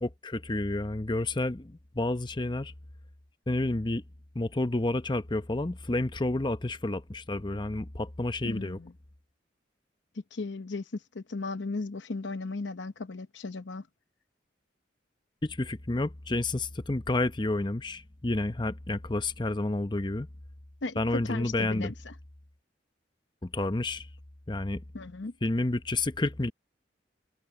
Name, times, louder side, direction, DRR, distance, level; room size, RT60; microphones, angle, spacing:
voice 1, 0.0-2.7 3.5-4.0 4.3-8.8 15.4-20.3 21.0-21.9 23.4-24.1 24.5-24.8 25.4-26.5, left 2 dB, 25° left, 0.8 m, -30 dB
voice 2, 8.4-8.9 10.3-13.9 20.8-22.1 24.9-25.3, left 3 dB, 70° left, 0.8 m, -36 dB
head